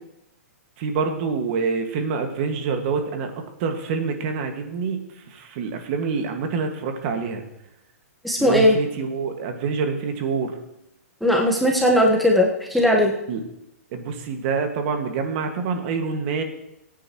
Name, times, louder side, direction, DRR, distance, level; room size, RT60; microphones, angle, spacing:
voice 1, 0.8-3.3 3.6-5.0 5.3-7.4 8.4-10.6 13.3-13.4 13.9-16.4, right 5 dB, 45° right, 5 dB, 1.9 m, -26 dB
voice 2, 8.2-8.7 11.2-13.1, left 1 dB, ahead, -1 dB, 1.3 m, -18 dB
22.0 x 9.2 x 3.1 m, 0.85 s
hypercardioid pair, 135°, 8 cm